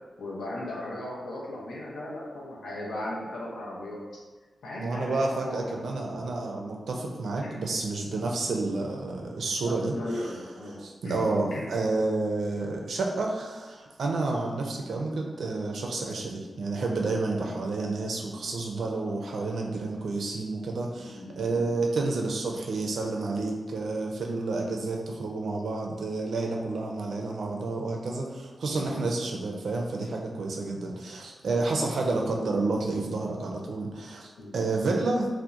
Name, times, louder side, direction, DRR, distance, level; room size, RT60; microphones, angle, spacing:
voice 1, 0.2-4.0 4.6-5.9 7.4-7.6 9.6-11.7 14.4-14.5 21.0-21.7 28.8-29.1 31.5-31.7 34.4-34.6, left 1 dB, 90° left, -5 dB, 0.5 m, -37 dB
voice 2, 4.8-9.9 10.8-35.3, right 3 dB, 80° right, 0 dB, 0.4 m, -30 dB
2.8 x 2.0 x 2.4 m, 1.3 s
cardioid pair, 60°, 0 cm